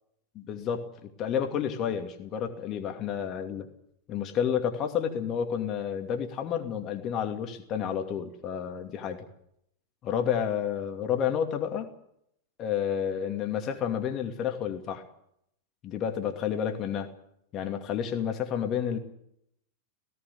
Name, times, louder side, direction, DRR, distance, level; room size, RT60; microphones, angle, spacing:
voice 1, 0.3-3.7 4.1-9.3 10.0-11.9 12.6-15.0 15.8-17.1 17.5-19.0, left 8 dB, 35° left, 5 dB, 2.6 m, -30 dB
17.0 x 16.0 x 9.9 m, 0.75 s
figure-of-eight pair, 90°, 0 cm